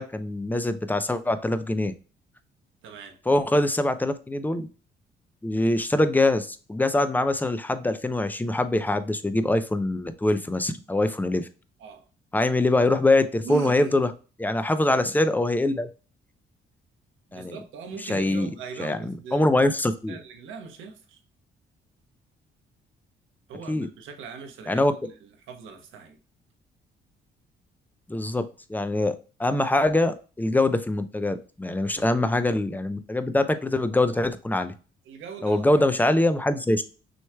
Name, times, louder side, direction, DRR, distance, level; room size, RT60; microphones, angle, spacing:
voice 1, 0.0-1.9 3.3-4.7 5.4-11.5 12.3-14.1 14.4-15.9 17.3-17.6 18.0-18.5 18.8-19.0 19.3-20.2 23.7-23.9 24.7-24.9 28.1-28.4 28.7-34.7 35.4-36.8, left 2 dB, 10° left, 0.5 m, -23 dB
voice 2, 2.8-3.2 11.8-12.1 13.4-14.0 17.3-19.4 20.1-21.2 23.5-26.2 31.8-32.0 35.0-35.9, right 6 dB, 80° right, 1.1 m, -40 dB
6.3 x 3.1 x 2.2 m
cardioid pair, 90°, 20 cm